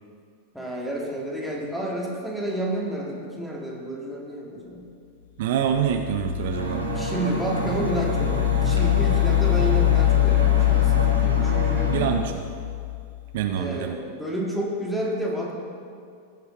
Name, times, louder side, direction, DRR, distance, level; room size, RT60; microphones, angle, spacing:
voice 1, 0.5-4.9 6.9-11.9 13.5-15.5, right 1 dB, ahead, -3 dB, 1.9 m, -30 dB
voice 2, 5.4-6.8 11.4-11.5 11.9-12.2 13.3-13.9, right 9 dB, 55° right, 5 dB, 0.5 m, -25 dB
sound 1, 5.7-13.2, left 20 dB, 65° left, 0.7 m, -23 dB
sound 2, 6.5-12.1, right 1 dB, 90° left, 1.6 m, -29 dB
15.5 x 6.0 x 4.2 m, 2.3 s
figure-of-eight pair, 90°, 0 cm